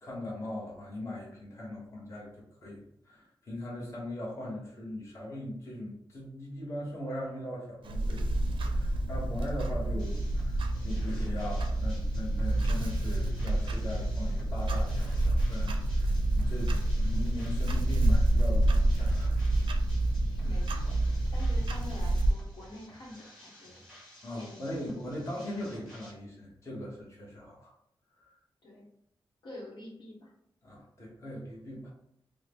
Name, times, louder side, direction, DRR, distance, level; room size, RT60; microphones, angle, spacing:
voice 1, 0.0-2.3 2.6-19.4 24.2-27.7 28.2-28.4 30.6-31.9, left 1 dB, 35° left, -5 dB, 1.0 m, -40 dB
Clock, 7.8-22.3, right 1 dB, 85° right, 0.4 m, -28 dB
sound 1, 10.0-26.1, equal, ahead, 1.2 m, -54 dB
voice 2, 20.3-23.8 24.3-25.1 28.6-28.9 29.4-30.3, left 1 dB, 70° left, -4 dB, 1.0 m, -47 dB
3.6 x 2.0 x 3.4 m, 0.76 s
wide cardioid pair, 170°, 8 cm